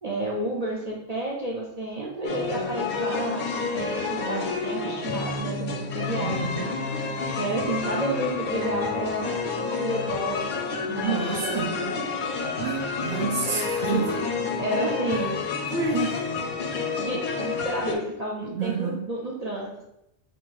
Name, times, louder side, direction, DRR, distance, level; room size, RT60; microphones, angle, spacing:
voice 1, 0.0-3.4 3.7-6.7 7.1-9.3 9.8-10.5 10.9-11.9 13.8-14.3 14.6-15.4 15.9-16.1 17.0-19.8, right 1 dB, 40° right, -3 dB, 0.7 m, -31 dB
sound 1, 2.2-17.9, left 4 dB, 55° left, 0.7 m, -29 dB
voice 2, 6.2-6.7 11.0-11.8 12.6-14.2 15.1-15.3 15.7-16.0 18.5-19.1, right 5 dB, 70° right, 0 dB, 1.0 m, -29 dB
3.7 x 2.7 x 4.7 m, 0.84 s
omnidirectional pair, 1.1 m